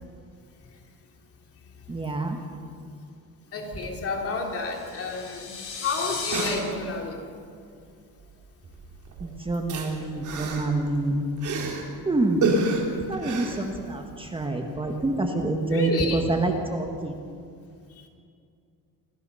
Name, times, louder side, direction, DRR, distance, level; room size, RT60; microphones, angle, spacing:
voice 1, 1.9-2.4 9.2-11.6 12.0-12.6 13.1-17.2, right 2 dB, 15° right, 3 dB, 1.6 m, -27 dB
voice 2, 3.5-7.4 15.7-16.3, left 3 dB, 40° left, 1 dB, 3.3 m, -30 dB
sound 1, 4.6-6.5, left 5 dB, 80° left, 7.7 m, -35 dB
sound 2, 5.4-5.5 5.7-5.8 6.1-7.1 8.2-8.5 8.7-11.9 12.4-14.3 14.6-14.7, right 3 dB, 50° right, 4.0 m, -30 dB
28.0 x 19.0 x 5.7 m, 2.4 s
cardioid pair, 155°, 37 cm